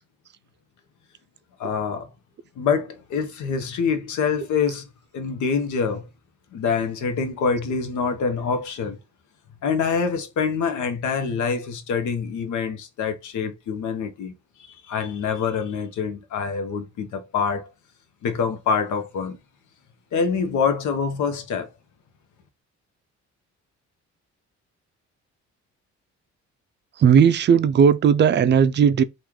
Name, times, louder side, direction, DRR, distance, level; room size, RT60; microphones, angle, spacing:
voice 1, 1.6-2.1 2.6-4.8 5.1-6.1 6.5-9.0 9.6-14.3 14.6-17.7 18.2-19.4 20.1-21.7, left 5 dB, 75° left, 0.9 m, -25 dB
voice 2, 27.0-29.0, right 7 dB, 40° right, 0.4 m, -16 dB
3.0 x 2.5 x 3.6 m
cardioid pair, 90°, 30 cm